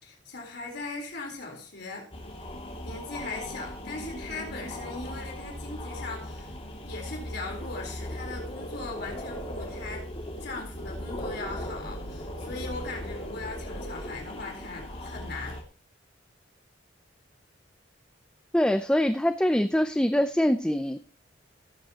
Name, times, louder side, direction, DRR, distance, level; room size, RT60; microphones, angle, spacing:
voice 1, 0.0-2.1 2.8-6.5 6.8-10.1 10.4-15.6, left 3 dB, 60° left, 1 dB, 4.0 m, -39 dB
sound 1, 2.1-15.6, left 1 dB, 30° left, 2.4 m, -38 dB
voice 2, 18.5-21.0, equal, 5° left, 9 dB, 0.5 m, -24 dB
17.0 x 9.0 x 2.9 m, 0.37 s
head